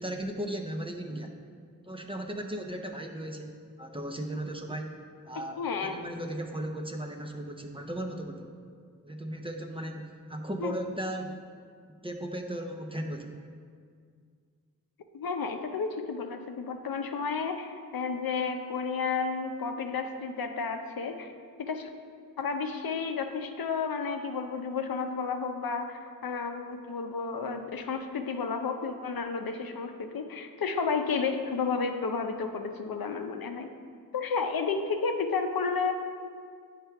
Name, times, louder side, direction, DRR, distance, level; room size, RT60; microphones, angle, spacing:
voice 1, 0.0-1.3 1.9-5.0 5.3-8.6 9.0-11.3 12.0-13.4, right 1 dB, 15° right, 3 dB, 0.6 m, -36 dB
voice 2, 5.6-5.9 10.6-10.7 15.1-21.3 21.6-21.9 22.4-33.7 34.1-35.9, left 5 dB, 85° left, 5 dB, 0.6 m, -32 dB
8.8 x 3.3 x 5.7 m, 2.1 s
wide cardioid pair, 75°, 35 cm